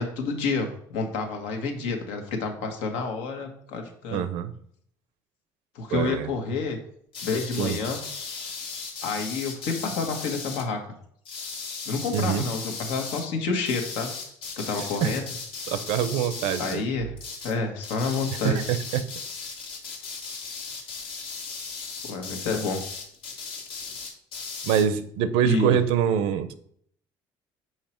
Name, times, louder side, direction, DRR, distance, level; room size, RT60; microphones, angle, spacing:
voice 1, 0.0-4.3 5.7-6.8 7.2-8.0 9.0-10.8 11.9-14.1 14.6-15.2 16.6-17.1 17.4-18.7 22.0-22.8 25.4-25.8, left 4 dB, 85° left, 4 dB, 1.4 m, -29 dB
voice 2, 4.1-4.5 5.9-6.3 7.6-7.8 12.1-12.4 15.0-15.1 15.7-16.8 18.4-19.0 24.6-26.5, right 9 dB, 85° right, 12 dB, 0.6 m, -24 dB
sound 1, 7.1-10.7 11.2-13.3 13.6-16.9 17.2-17.6 17.8-24.9, left 5 dB, 65° left, 1.5 m, -37 dB
5.7 x 4.7 x 4.4 m, 0.64 s
cardioid pair, 120°, 10 cm